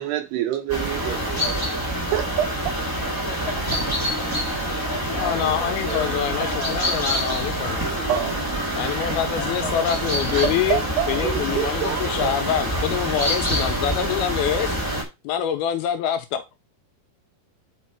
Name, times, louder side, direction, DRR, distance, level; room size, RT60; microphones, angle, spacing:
voice 1, 0.0-2.8 8.1-9.8 10.3-12.4, right 10 dB, 80° right, 3.1 m, -28 dB
sound 1, 0.7-15.0, equal, 10° right, 1.1 m, -26 dB
voice 2, 3.3-3.9 4.2-6.7 9.3-9.9, left 1 dB, 35° left, 2.5 m, -35 dB
voice 3, 5.2-7.9 8.8-10.8 11.1-16.4, left 10 dB, 80° left, 2.4 m, -26 dB
sound 2, 5.2-6.0 6.4-10.6 11.0-11.1, right 7 dB, 55° right, 2.3 m, -43 dB
6.1 x 5.2 x 4.5 m
omnidirectional pair, 4.7 m